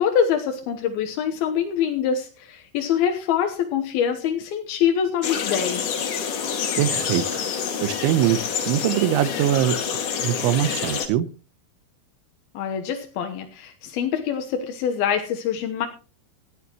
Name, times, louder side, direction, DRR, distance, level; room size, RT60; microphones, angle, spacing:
voice 1, 0.0-5.9 12.5-15.9, left 8 dB, 75° left, 5 dB, 2.3 m, -24 dB
sound 1, 5.2-11.1, left 7 dB, 55° left, 2.7 m, -27 dB
voice 2, 6.8-7.4 7.8-9.8 10.2-11.3, right 12 dB, 80° right, 14 dB, 2.9 m, -22 dB
18.0 x 13.0 x 3.0 m, 0.33 s
omnidirectional pair, 5.9 m